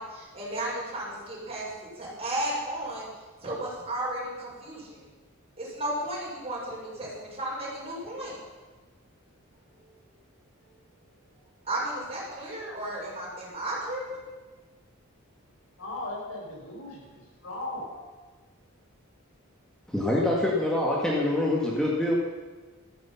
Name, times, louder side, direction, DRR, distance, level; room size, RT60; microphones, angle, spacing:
voice 1, 0.0-1.7 2.0-3.1 3.4-5.0 5.6-8.4 11.7-14.2, right 1 dB, 30° right, -5 dB, 6.0 m, -34 dB
voice 2, 15.8-18.1, left 2 dB, 75° left, -2 dB, 5.4 m, -38 dB
voice 3, 19.9-22.1, left 1 dB, 5° left, -4 dB, 1.9 m, -25 dB
14.5 x 14.0 x 5.8 m, 1.3 s
head